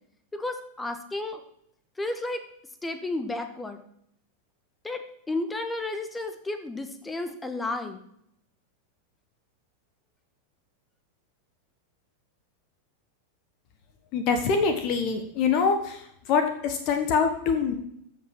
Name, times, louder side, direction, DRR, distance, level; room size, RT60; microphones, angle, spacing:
voice 1, 0.3-1.4 2.0-2.4 2.8-3.8 4.8-5.0 5.3-8.0, left 2 dB, 10° left, 8 dB, 1.5 m, -32 dB
voice 2, 14.1-16.0 16.3-17.7, left 5 dB, 40° left, 7 dB, 1.4 m, -24 dB
14.5 x 5.9 x 6.1 m, 0.72 s
figure-of-eight pair, 90°, 0 cm